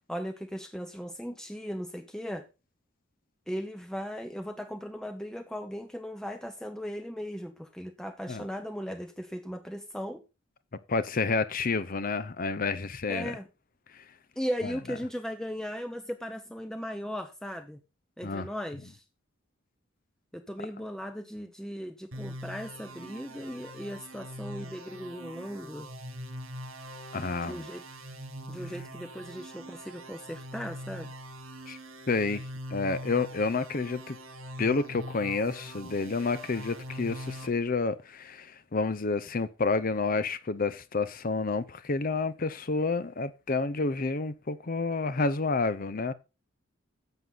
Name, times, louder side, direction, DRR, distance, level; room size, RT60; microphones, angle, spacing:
voice 1, 0.1-2.5 3.5-10.2 13.1-13.5 14.4-17.8 18.2-19.0 20.3-25.9 27.4-27.8 28.5-31.1, equal, 5° left, 0.7 m, -37 dB
voice 2, 10.9-13.4 13.9-14.0 14.6-14.7 18.2-18.5 27.1-27.7 31.7-31.8 32.1-32.4 32.7-34.2 34.6-46.1, left 3 dB, 45° left, 0.6 m, -29 dB
sound 1, 22.1-37.5, equal, 90° right, 3.3 m, -43 dB
10.5 x 7.8 x 4.0 m
head